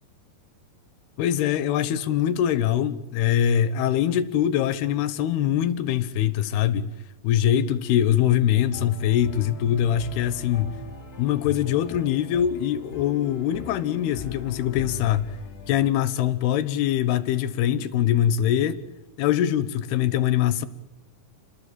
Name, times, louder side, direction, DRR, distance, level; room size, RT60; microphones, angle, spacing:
voice 1, 1.2-6.9 7.2-10.8 11.2-15.4 15.7-18.8 19.2-20.7, left 10 dB, 85° left, 3.2 m, -23 dB
sound 1, 8.7-15.9, left 5 dB, 30° left, 2.3 m, -39 dB
29.5 x 21.0 x 7.6 m
omnidirectional pair, 4.5 m